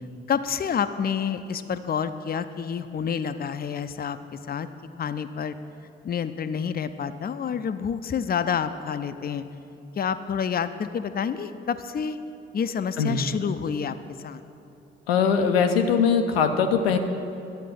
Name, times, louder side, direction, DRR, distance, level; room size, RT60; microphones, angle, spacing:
voice 1, 0.3-4.7 5.0-5.6 6.0-9.5 10.0-12.2 12.5-14.4, left 7 dB, 30° left, 11 dB, 0.6 m, -28 dB
voice 2, 15.1-17.0, left 6 dB, 80° left, 6 dB, 0.7 m, -21 dB
11.5 x 8.3 x 6.2 m, 2.7 s
figure-of-eight pair, 40°, 30 cm